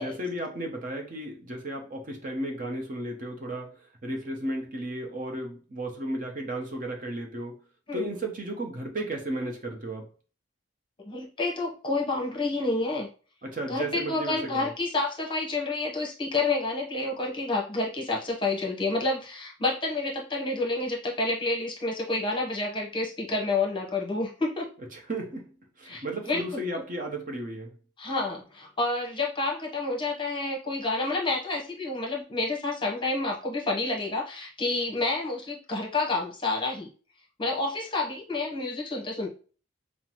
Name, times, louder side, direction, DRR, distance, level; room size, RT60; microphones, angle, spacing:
voice 1, 0.0-7.6 7.9-10.0 13.5-14.7 24.9-25.5 25.8-27.7, right 1 dB, 45° right, 0.8 m, -34 dB
voice 2, 11.0-13.1 13.7-24.7 25.8-26.8 28.0-36.9 37.4-39.3, left 2 dB, 25° left, 0.9 m, -29 dB
5.7 x 2.0 x 3.0 m
head